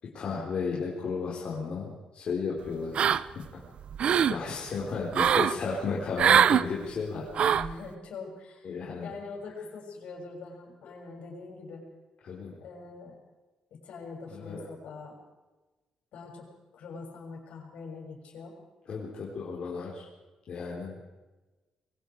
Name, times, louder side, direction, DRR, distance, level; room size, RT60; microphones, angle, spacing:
voice 1, 0.1-3.1 3.3-3.4 4.3-7.3 8.6-9.1 12.2-12.6 14.3-14.7 18.9-20.1 20.5-21.0, left 5 dB, 55° left, -4 dB, 4.2 m, -34 dB
sound 1, 2.9-3.5 3.8-4.4 5.1-5.5 6.2-6.6 7.3-7.7, right 8 dB, 55° right, 0.7 m, -22 dB
voice 2, 7.5-11.8 12.6-13.2 13.7-15.1 16.1-18.6, left 4 dB, 85° left, 1 dB, 6.6 m, -43 dB
25.0 x 23.0 x 4.8 m, 1.2 s
cardioid pair, 150°, 2 cm